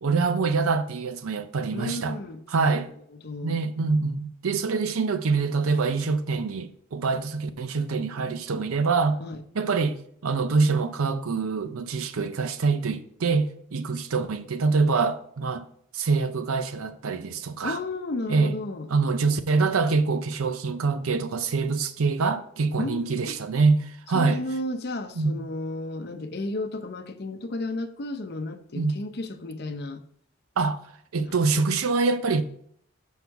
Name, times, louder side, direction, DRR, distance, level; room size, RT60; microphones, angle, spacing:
voice 1, 0.0-2.2 2.5-2.9 3.4-9.2 9.5-10.0 10.2-15.7 15.9-17.8 18.3-18.5 18.9-24.4 25.2-25.4 28.8-28.9 30.6-30.8 31.1-32.4, right 4 dB, 85° right, 0.6 m, -25 dB
voice 2, 1.7-2.4 3.1-3.6 9.2-9.4 17.6-18.9 22.8-23.4 24.1-30.0 31.2-31.6, left 2 dB, 50° left, 0.6 m, -33 dB
6.2 x 5.4 x 4.6 m
head